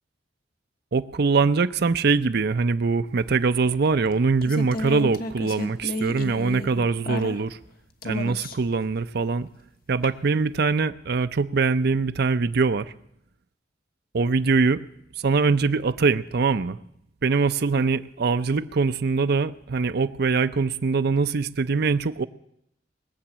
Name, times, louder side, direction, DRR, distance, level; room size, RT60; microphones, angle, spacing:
voice 1, 0.9-7.6 8.0-9.5 9.9-12.9 14.1-14.8 15.2-16.8 17.2-22.3, right 4 dB, 60° right, 12 dB, 0.6 m, -23 dB
sound 1, 3.7-7.7 8.0-8.8 10.0-10.1, left 2 dB, 50° left, 1.2 m, -32 dB
20.5 x 7.1 x 8.7 m, 0.77 s
head